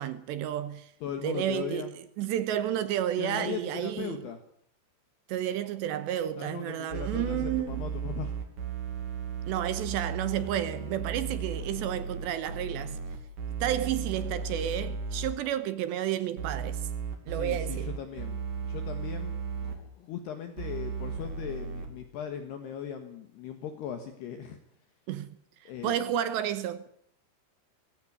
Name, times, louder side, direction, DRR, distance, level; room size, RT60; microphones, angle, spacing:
voice 1, 0.0-0.9 1.2-1.9 2.2-4.3 5.3-7.8 9.5-13.0 13.6-16.8 17.3-17.9 25.1-25.4 25.8-26.8, right 11 dB, 75° right, 3.0 m, -31 dB
voice 2, 1.0-1.9 3.2-4.4 6.4-8.3 17.3-18.4 18.6-19.3 19.6-24.6 25.6-25.9, left 9 dB, 65° left, 3.2 m, -38 dB
sound 1, 6.9-15.3 16.4-19.8 20.6-21.9, right 6 dB, 45° right, 4.3 m, -35 dB
20.0 x 16.0 x 9.8 m
omnidirectional pair, 5.7 m